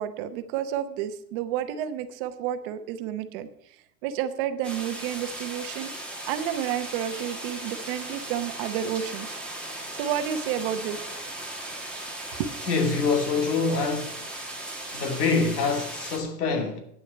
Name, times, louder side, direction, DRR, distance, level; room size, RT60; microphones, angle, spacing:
voice 1, 0.0-3.5 4.0-5.9 6.3-9.4 9.9-11.0 12.4-12.5, right 10 dB, 35° right, 0.8 m, -30 dB
sound 1, 4.6-16.2, right 1 dB, ahead, 1.3 m, -37 dB
voice 2, 12.7-14.2 14.9-16.8, left 4 dB, 80° left, 2.7 m, -25 dB
9.4 x 6.4 x 8.4 m
supercardioid pair, 160°, 46 cm